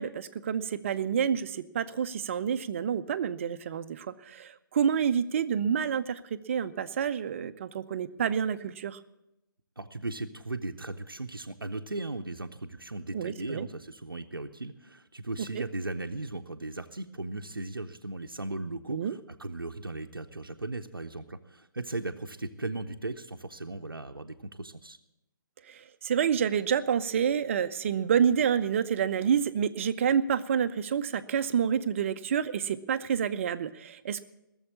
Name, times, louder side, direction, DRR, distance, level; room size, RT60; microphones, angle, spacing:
voice 1, 0.0-9.0 13.1-13.7 18.9-19.2 25.7-34.2, right 8 dB, 35° right, 11 dB, 0.6 m, -28 dB
voice 2, 9.8-25.0, right 2 dB, 85° right, 4 dB, 0.7 m, -37 dB
17.0 x 7.2 x 8.4 m, 0.89 s
figure-of-eight pair, 135°, 11 cm